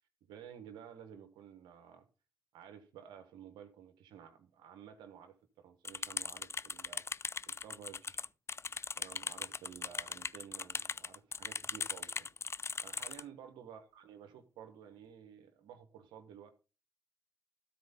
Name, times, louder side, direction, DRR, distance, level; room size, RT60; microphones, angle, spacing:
voice 1, 0.3-2.1 2.5-7.0 7.5-8.2 9.0-12.3 12.8-16.5, right 8 dB, 85° right, 1.3 m, -53 dB
sound 1, 5.8-13.2, left 4 dB, 35° left, 0.4 m, -39 dB
13.0 x 4.6 x 5.3 m
supercardioid pair, 40°, 7 cm